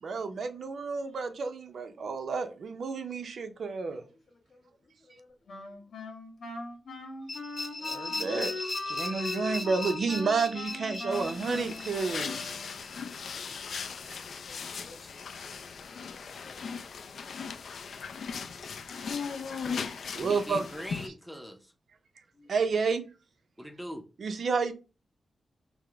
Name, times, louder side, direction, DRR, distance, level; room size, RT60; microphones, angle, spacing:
voice 1, 0.0-4.0 7.8-12.5 19.2-19.3 20.1-20.7 22.5-23.0 24.2-24.7, right 4 dB, 65° right, 0.5 m, -31 dB
voice 2, 3.9-5.8 13.1-16.8 17.0-17.2 22.3-22.5, left 2 dB, 50° left, 0.9 m, -59 dB
Wind instrument woodwind instrument, 5.5-12.9, left 3 dB, 90° left, 1.1 m, -40 dB
sound 1, 7.3-14.1, left 2 dB, 30° left, 1.1 m, -38 dB
sound 2, 11.1-21.1, left 6 dB, 70° left, 0.3 m, -38 dB
voice 3, 20.2-21.7 23.6-24.0, equal, 5° right, 0.5 m, -41 dB
4.7 x 2.0 x 3.4 m
wide cardioid pair, 155°, 0 cm